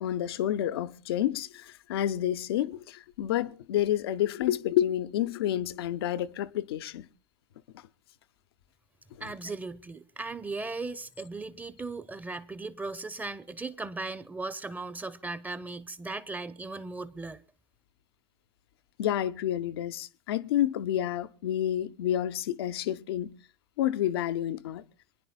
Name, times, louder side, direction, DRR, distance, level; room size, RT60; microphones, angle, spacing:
voice 1, 0.0-7.1 7.7-7.8 19.0-23.3 23.8-24.8, left 12 dB, 70° left, 0.6 m, -29 dB
voice 2, 9.2-17.4, right 3 dB, 10° right, 0.8 m, -37 dB
27.5 x 10.5 x 2.2 m
figure-of-eight pair, 75°, 13 cm